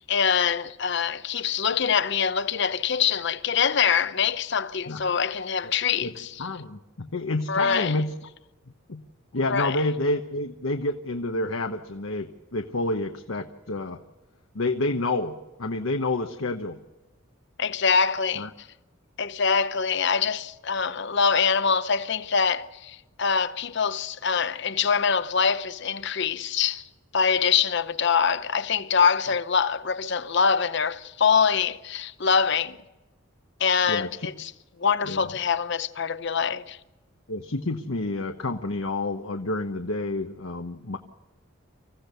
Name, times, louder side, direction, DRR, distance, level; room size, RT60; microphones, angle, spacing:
voice 1, 0.0-6.3 7.5-7.9 9.5-9.8 17.6-18.5 19.2-26.8 27.1-32.8 33.6-34.5 34.8-36.8, left 6 dB, 60° left, 0.8 m, -24 dB
voice 2, 6.4-8.1 8.9-9.0 9.3-14.0 14.5-16.8 18.4-18.5 33.9-34.3 35.1-35.3 37.3-41.0, left 2 dB, 80° left, 1.1 m, -29 dB
26.0 x 15.5 x 6.8 m
head